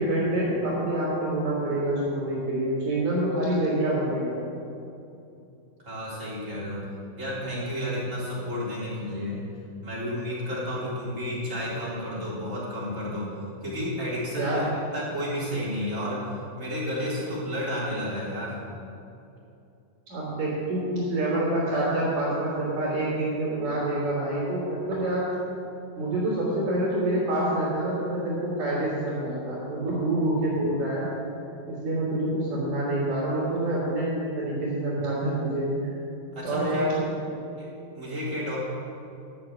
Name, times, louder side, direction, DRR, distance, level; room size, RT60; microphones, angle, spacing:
voice 1, 0.0-4.4 14.3-14.6 20.1-25.3 26.0-31.1 31.7-35.9 36.4-37.0 37.3-37.4, right 1 dB, 60° right, -11 dB, 4.5 m, -27 dB
voice 2, 5.8-9.4 9.8-14.7 14.9-16.3 16.6-18.6 36.3-36.9 37.6-37.7 37.9-38.6, equal, 20° right, -8 dB, 3.6 m, -31 dB
11.5 x 7.3 x 8.7 m, 2.7 s
omnidirectional pair, 4.3 m